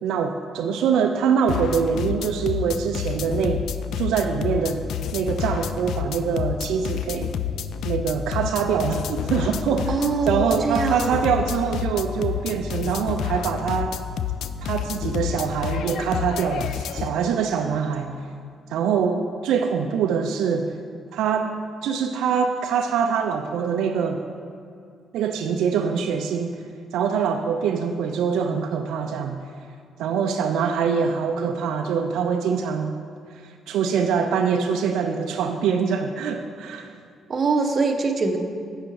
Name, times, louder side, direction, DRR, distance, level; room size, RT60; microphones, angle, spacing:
voice 1, 0.0-3.6 4.0-4.8 5.1-7.3 7.8-14.0 14.6-18.2 18.7-20.7 21.1-21.5 21.8-24.2 25.1-26.5 26.9-29.4 30.0-32.9 33.3-37.0, right 6 dB, 85° right, 5 dB, 0.4 m, -24 dB
sound 1, 1.5-17.1, left 8 dB, 75° left, 0.3 m, -29 dB
voice 2, 9.9-11.2 37.3-38.4, right 4 dB, 45° right, 4 dB, 0.9 m, -23 dB
8.5 x 6.3 x 4.6 m, 2.3 s
cardioid pair, 90°, 0 cm